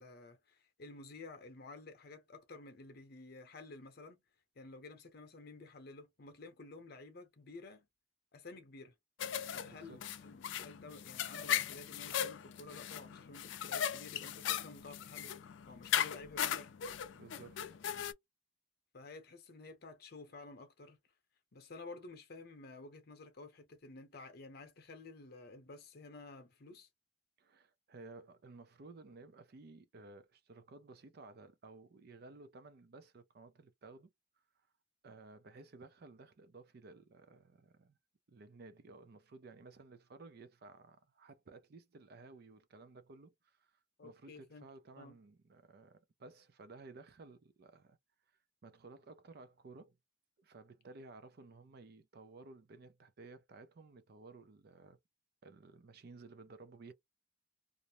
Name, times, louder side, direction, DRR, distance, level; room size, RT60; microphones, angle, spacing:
voice 1, 0.0-4.2 4.6-7.9 8.3-8.9 9.5-15.4 15.7-16.7 18.9-21.0 21.5-26.9 44.0-44.7 45.0-45.2, left 3 dB, 55° left, 0.7 m, -52 dB
sound 1, 9.2-18.1, left 10 dB, 75° left, 0.3 m, -38 dB
voice 2, 9.6-10.0 17.1-17.8 27.4-34.1 35.0-38.0 38.3-48.0 48.6-50.0 50.4-55.0 55.4-56.9, right 3 dB, 55° right, 0.5 m, -55 dB
2.5 x 2.0 x 2.9 m
head